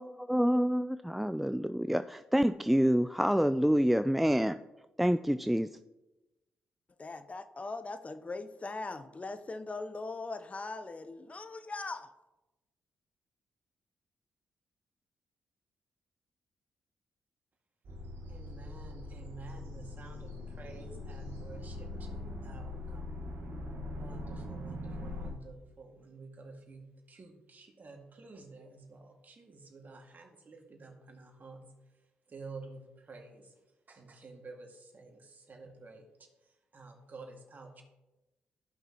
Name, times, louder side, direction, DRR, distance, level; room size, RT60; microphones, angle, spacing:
voice 1, 0.0-4.6 5.0-5.7, equal, 5° right, 0.3 m, -27 dB
voice 2, 7.0-12.1, left 3 dB, 35° left, 0.7 m, -40 dB
sound 1, 17.8-25.3, left 2 dB, 70° right, 1.4 m, -42 dB
voice 3, 18.3-23.0 24.0-33.6 33.9-37.8, right 3 dB, 50° right, 1.9 m, -50 dB
13.5 x 6.0 x 2.9 m
supercardioid pair, 45°, 4 cm